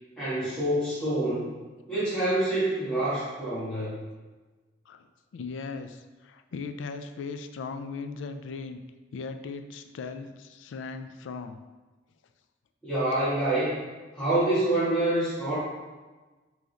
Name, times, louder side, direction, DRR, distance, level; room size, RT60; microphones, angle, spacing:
voice 1, 0.2-1.4 1.9-4.0 12.8-13.8 14.1-15.6, right 1 dB, 5° left, -15 dB, 1.5 m, -26 dB
voice 2, 5.3-8.8 9.1-11.6, left 4 dB, 90° left, 8 dB, 0.3 m, -38 dB
3.6 x 3.2 x 4.0 m, 1.3 s
head